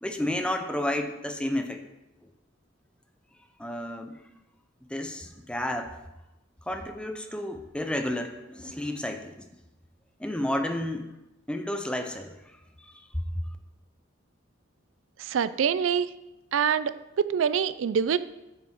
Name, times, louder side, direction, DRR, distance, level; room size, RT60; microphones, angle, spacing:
voice 1, 0.0-1.8 3.6-4.2 4.9-6.0 6.7-9.5 10.2-11.1 11.5-12.3 12.8-13.1, left 1 dB, 5° left, 6 dB, 0.6 m, -31 dB
voice 2, 15.2-16.2 16.5-18.2, right 7 dB, 90° right, 15 dB, 0.4 m, -25 dB
8.7 x 6.1 x 4.5 m, 0.95 s
head